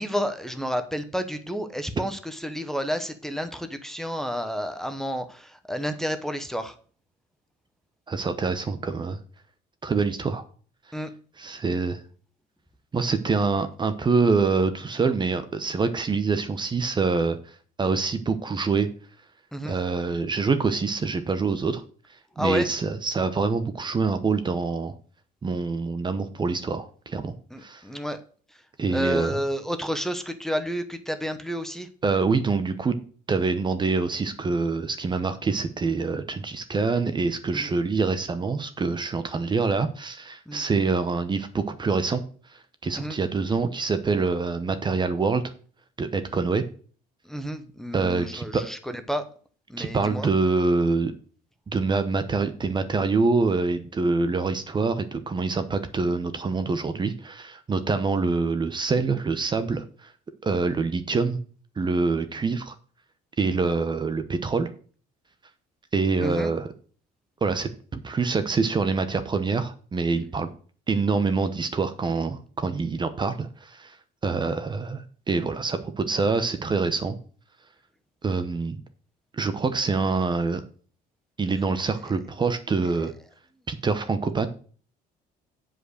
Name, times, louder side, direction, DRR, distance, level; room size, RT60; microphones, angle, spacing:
voice 1, 0.0-6.7 10.9-11.1 19.5-19.7 22.4-22.7 27.5-28.2 28.9-31.9 37.5-37.7 40.5-40.6 43.0-43.2 47.2-49.2 49.7-50.3 66.2-66.5, equal, ahead, 7 dB, 1.0 m, -30 dB
voice 2, 8.1-9.2 9.8-10.4 11.4-12.0 12.9-18.9 19.6-21.8 22.4-24.9 25.4-27.3 27.6-27.8 28.8-29.4 32.0-33.0 33.3-42.2 42.5-45.4 46.0-46.6 47.9-48.6 49.8-51.1 51.7-60.1 60.4-61.4 61.8-62.8 63.4-64.7 65.9-66.7 67.4-70.5 70.9-74.0 74.2-77.2 78.2-78.8 79.3-80.6 81.4-83.1 83.7-84.5, right 4 dB, 25° right, 9 dB, 0.9 m, -25 dB
7.9 x 5.1 x 6.4 m, 0.42 s
cardioid pair, 110°, 17 cm